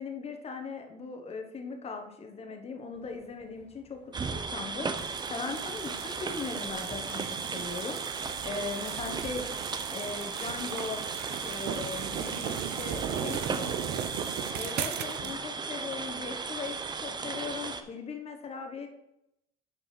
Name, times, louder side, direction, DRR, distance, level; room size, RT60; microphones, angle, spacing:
voice 1, 0.0-8.0 8.4-9.5 9.9-11.0 11.4-13.7 14.5-18.9, left 4 dB, 35° left, 5 dB, 1.3 m, -39 dB
sound 1, 2.9-10.8, left 3 dB, 75° left, 1.8 m, -60 dB
sound 2, 4.1-17.8, right 4 dB, 25° right, 0.7 m, -36 dB
sound 3, 5.0-15.4, right 10 dB, 80° right, 0.6 m, -38 dB
voice 2, 12.4-12.7 13.1-15.6 17.1-17.5, left 1 dB, 15° left, 0 dB, 1.7 m, -50 dB
6.2 x 5.2 x 5.8 m, 0.83 s
cardioid pair, 110°, 17 cm